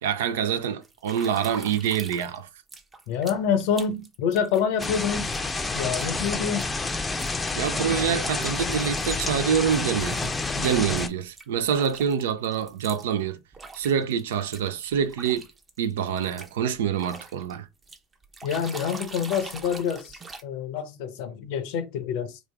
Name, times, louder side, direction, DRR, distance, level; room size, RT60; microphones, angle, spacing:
voice 1, 0.0-2.5 7.5-10.3 10.6-13.4 13.7-15.5 15.8-17.7, right 8 dB, 80° right, 0.5 m, -26 dB
sound 1, 0.8-2.4 2.7-11.1 11.4-13.1 13.5-17.5 17.8-20.4, right 3 dB, 25° right, 0.7 m, -43 dB
voice 2, 3.1-5.3 5.7-6.7 18.4-22.4, left 7 dB, 70° left, 0.6 m, -27 dB
sound 2, 4.8-11.1, left 3 dB, 20° left, 0.5 m, -29 dB
3.1 x 2.5 x 3.4 m
hypercardioid pair, 80°, 0 cm